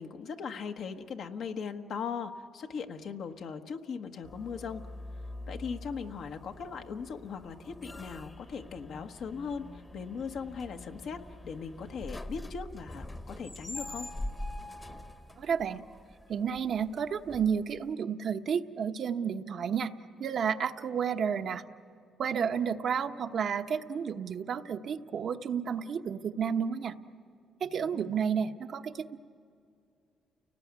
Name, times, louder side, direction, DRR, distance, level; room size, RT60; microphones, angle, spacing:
voice 1, 0.0-4.8 5.5-14.1 27.9-28.0, left 6 dB, 70° left, 5 dB, 1.4 m, -39 dB
sound 1, 4.2-17.9, left 1 dB, 20° left, 1.1 m, -44 dB
voice 2, 15.4-15.8 16.3-19.9 20.2-21.6 22.2-27.0 27.6-29.2, right 7 dB, 60° right, 7 dB, 1.0 m, -31 dB
30.0 x 19.0 x 9.6 m, 2.5 s
cardioid pair, 90°, 0 cm